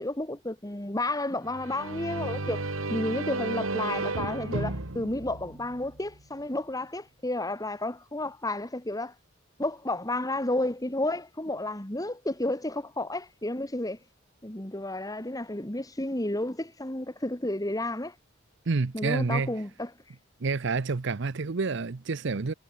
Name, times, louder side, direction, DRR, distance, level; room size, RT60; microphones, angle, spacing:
voice 1, 0.0-2.6 2.9-9.1 9.6-14.0 14.4-18.1 18.9-19.9, left 1 dB, 20° left, 2.1 m, -31 dB
sound 1, 1.5-6.2, right 2 dB, 85° right, 2.6 m, -33 dB
voice 2, 18.7-19.5 20.4-22.5, right 4 dB, 60° right, 0.7 m, -28 dB
head